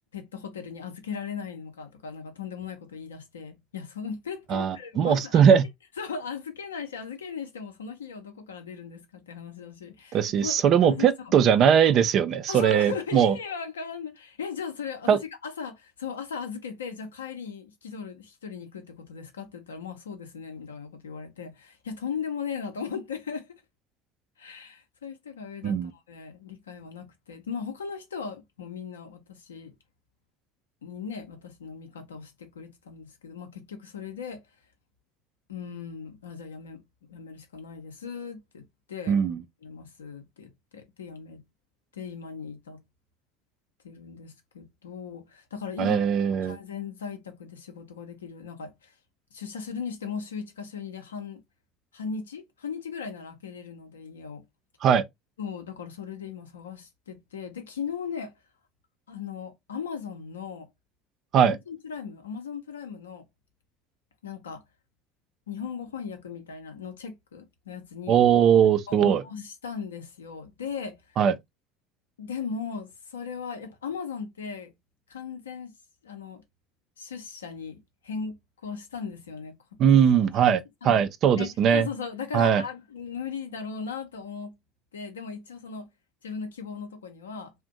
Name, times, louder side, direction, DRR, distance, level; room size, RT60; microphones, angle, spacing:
voice 1, 0.1-5.6 6.0-11.3 12.5-23.5 24.4-29.7 30.8-34.4 35.5-36.8 37.1-39.2 39.6-41.4 41.9-42.8 43.8-48.9 49.3-51.4 51.9-54.4 55.4-58.3 59.1-60.7 61.4-63.3 64.2-64.6 65.5-68.2 68.9-71.2 72.2-74.7 75.1-75.7 76.0-76.4 77.0-77.8 78.0-78.4 78.6-79.5 79.9-80.0 80.4-80.5 80.8-81.0 81.4-84.5 84.9-85.9 86.2-87.5, left 6 dB, 85° left, 0.6 m, -37 dB
voice 2, 4.5-5.6 10.1-13.3 15.1-15.2 25.6-25.9 39.1-39.4 45.8-46.6 54.8-55.0 61.3-61.6 68.1-69.2 71.2-71.3 79.8-81.8 82.3-82.6, right 8 dB, 50° right, 0.4 m, -20 dB
2.5 x 2.1 x 3.7 m
hypercardioid pair, 65°, 0 cm